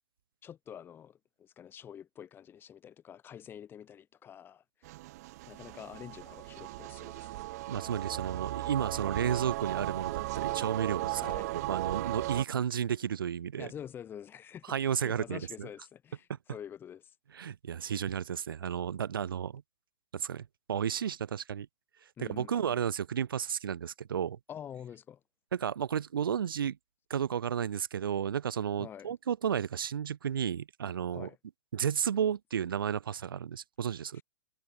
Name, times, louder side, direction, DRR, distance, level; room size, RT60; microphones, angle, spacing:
voice 1, 0.4-4.9 5.5-7.4 11.2-11.5 13.6-17.1 22.2-22.7 24.5-25.2 28.8-29.1 31.1-31.4 34.1-34.2, left 9 dB, 20° left, 5.1 m, -47 dB
sound 1, 4.8-12.4, right 18 dB, 50° right, 0.8 m, -36 dB
voice 2, 7.7-11.2 11.5-13.7 14.7-15.7 17.3-19.6 20.1-21.7 22.2-24.4 25.5-26.8 27.1-31.3 31.7-34.2, right 8 dB, 90° right, 1.5 m, -32 dB
hypercardioid pair, 145°, 11 cm